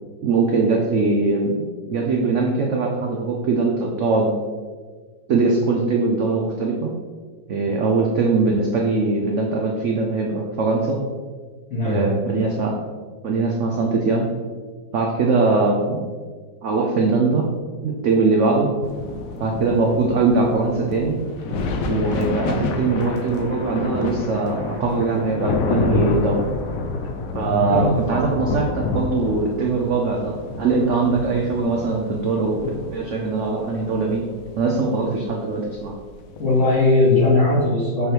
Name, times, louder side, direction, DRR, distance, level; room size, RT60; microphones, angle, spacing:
voice 1, 0.2-4.3 5.3-6.9 7.5-11.0 11.9-12.8 13.2-14.3 14.9-16.0 16.6-17.4 17.8-18.7 19.4-21.2 21.9-26.4 27.3-32.6 32.9-34.2 34.6-35.9, right 3 dB, 85° right, 0 dB, 0.6 m, -21 dB
sound 1, 18.8-37.3, left 3 dB, 75° left, 0.7 m, -29 dB
sound 2, 20.8-21.1 21.4-25.2 25.5-26.4, equal, 35° right, 0.5 m, -36 dB
voice 2, 27.4-27.9 36.4-38.1, left 2 dB, 40° left, -9 dB, 1.6 m, -18 dB
6.7 x 3.3 x 4.5 m, 1.5 s
omnidirectional pair, 2.1 m